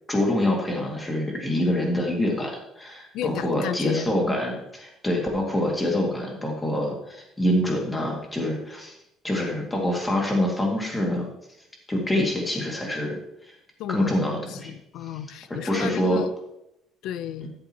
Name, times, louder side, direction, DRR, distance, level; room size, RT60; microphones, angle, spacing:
voice 1, 0.1-9.0 9.2-11.3 11.9-13.6 13.9-14.7 15.6-16.2, left 1 dB, 10° left, -1 dB, 2.3 m, -25 dB
voice 2, 3.1-4.1 12.1-12.2 13.8-16.3 17.0-17.5, left 10 dB, 70° left, 14 dB, 0.6 m, -33 dB
13.5 x 7.8 x 3.0 m, 0.82 s
cardioid pair, 155°, 0 cm